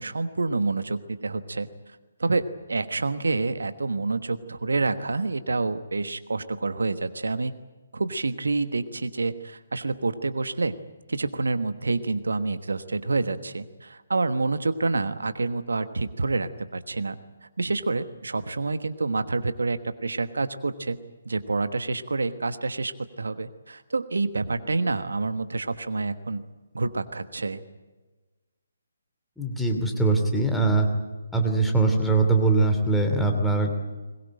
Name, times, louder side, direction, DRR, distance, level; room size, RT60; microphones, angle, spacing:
voice 1, 0.0-7.5 7.9-10.8 11.1-17.2 17.6-21.0 21.2-26.4 26.7-27.6, right 3 dB, 70° right, 11 dB, 1.3 m, -28 dB
voice 2, 29.4-30.9 31.3-33.8, right 3 dB, ahead, 2 dB, 2.9 m, -22 dB
21.5 x 21.5 x 9.0 m, 1.3 s
figure-of-eight pair, 140°, 0 cm